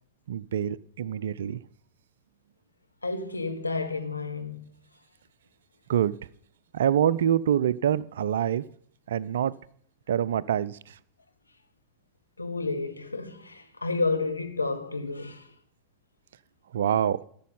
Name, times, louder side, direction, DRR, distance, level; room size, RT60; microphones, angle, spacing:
voice 1, 0.3-1.6 5.9-6.2 6.7-8.6 9.1-9.5 10.1-10.9 16.7-17.2, right 9 dB, 60° right, 0.4 m, -25 dB
voice 2, 3.0-4.7 12.4-15.5, left 3 dB, 80° left, 1.0 m, -31 dB
12.5 x 7.0 x 5.6 m
figure-of-eight pair, 90°, 0 cm